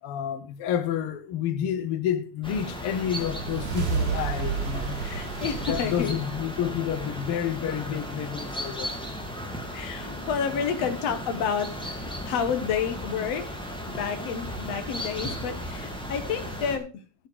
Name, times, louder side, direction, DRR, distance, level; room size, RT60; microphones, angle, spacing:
voice 1, 0.0-5.0 5.7-9.0, left 9 dB, 85° left, 1.2 m, -29 dB
sound 1, 2.4-16.8, equal, ahead, 1.4 m, -36 dB
sound 2, 3.2-7.6, right 6 dB, 60° right, 3.5 m, -32 dB
voice 2, 5.0-6.1 9.7-12.0 12.2-13.6 13.9-16.9, left 7 dB, 60° left, 2.2 m, -30 dB
12.5 x 8.0 x 4.8 m
omnidirectional pair, 3.8 m